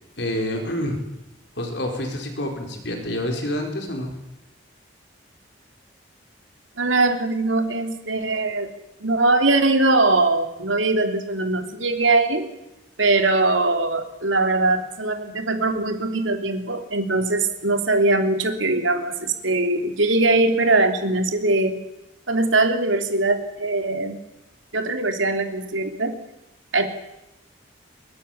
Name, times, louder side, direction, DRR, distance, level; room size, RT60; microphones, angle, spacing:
voice 1, 0.2-1.0 1.5-4.1, left 1 dB, 65° left, 3 dB, 4.4 m, -27 dB
voice 2, 6.8-8.7 9.0-12.5 13.0-21.7 22.3-24.2 24.7-26.1 26.7-26.9, right 2 dB, 80° right, 6 dB, 3.2 m, -21 dB
24.0 x 22.0 x 7.3 m, 0.91 s
head